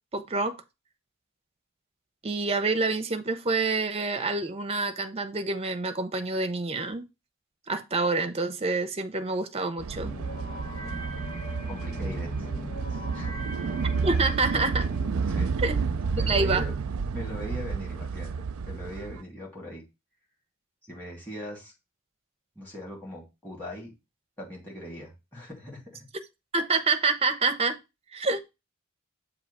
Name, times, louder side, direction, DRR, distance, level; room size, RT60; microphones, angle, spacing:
voice 1, 0.1-0.6 2.2-7.0 7.7-10.1 14.0-14.9 15.6-15.8 16.3-16.6 26.5-27.8 28.1-28.4, right 3 dB, 30° right, 0.6 m, -27 dB
sound 1, 9.8-19.2, right 5 dB, 80° right, 0.4 m, -30 dB
sound 2, 10.0-17.2, equal, 30° left, 3.0 m, -40 dB
voice 2, 11.7-12.5 12.9-13.4 15.3-15.6 16.1-16.7 17.1-19.8 20.9-21.7 22.6-23.9 24.4-26.1, equal, 10° left, 2.7 m, -40 dB
7.0 x 2.8 x 5.3 m
head